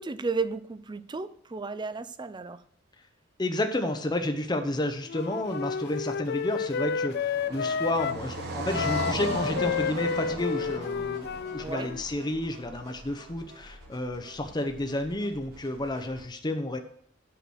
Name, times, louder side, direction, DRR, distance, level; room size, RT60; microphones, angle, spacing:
voice 1, 0.0-2.6 11.6-11.9, right 4 dB, 20° right, 14 dB, 0.4 m, -33 dB
voice 2, 3.4-16.8, left 1 dB, 20° left, 6 dB, 0.7 m, -31 dB
Wind instrument woodwind instrument, 5.1-8.2 8.7-12.0, left 6 dB, 50° left, 0.3 m, -31 dB
Car passing by, 5.8-13.0, right 2 dB, 55° right, 1.4 m, -37 dB
sound 1, 10.3-16.2, equal, 75° right, 4.1 m, -51 dB
8.4 x 5.8 x 6.2 m, 0.64 s
head